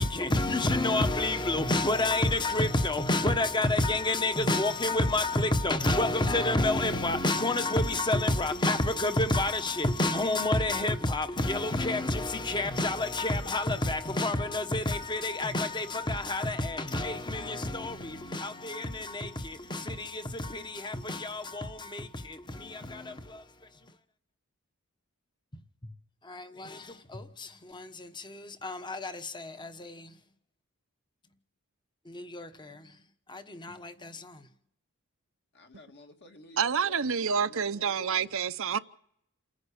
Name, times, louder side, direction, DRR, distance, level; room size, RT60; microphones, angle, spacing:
voice 1, 0.0-23.4 26.2-30.1 32.1-32.9 33.3-34.4, left 2 dB, 20° left, 1.2 m, -29 dB
voice 2, 35.5-38.3, left 1 dB, 50° left, 2.2 m, -51 dB
voice 3, 36.6-38.8, right 6 dB, 65° right, 0.8 m, -28 dB
28.5 x 10.5 x 8.5 m
head